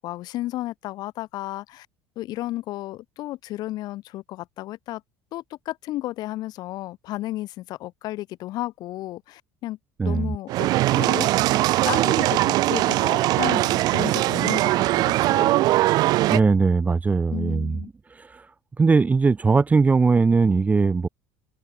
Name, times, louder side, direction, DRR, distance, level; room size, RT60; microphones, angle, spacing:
voice 1, 0.0-1.9 2.2-5.0 5.3-9.8 10.0-10.7 11.0-11.3 11.9-15.7 17.3-17.9, left 16 dB, 60° left, 3.5 m, -33 dB
voice 2, 10.0-10.4 16.3-17.8 18.8-21.1, right 4 dB, 20° right, 1.3 m, -19 dB
sound 1, 10.5-16.4, right 17 dB, 60° right, 0.6 m, -21 dB
supercardioid pair, 105°, 8 cm